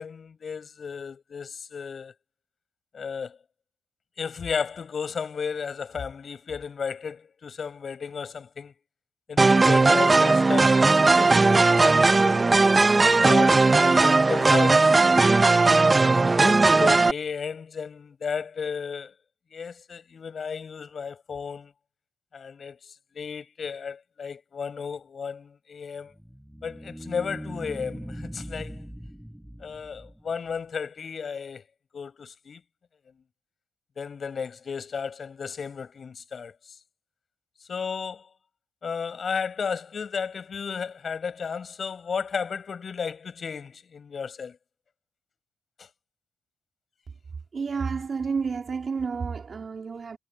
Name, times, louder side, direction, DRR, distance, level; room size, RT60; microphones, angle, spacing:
voice 1, 0.0-2.1 2.9-3.4 4.2-8.7 9.3-12.4 13.2-15.5 16.4-19.1 19.5-21.7 22.3-26.1 26.6-28.8 29.6-31.6 31.9-32.6 34.0-36.5 37.7-38.3 38.8-44.6, left 6 dB, 55° left, 7.4 m, -34 dB
sound 1, 9.4-17.1, right 3 dB, 30° right, 0.7 m, -18 dB
sound 2, 26.1-30.6, equal, 5° right, 6.4 m, -40 dB
voice 2, 47.5-50.2, right 5 dB, 50° right, 3.6 m, -30 dB
supercardioid pair, 60°, 0 cm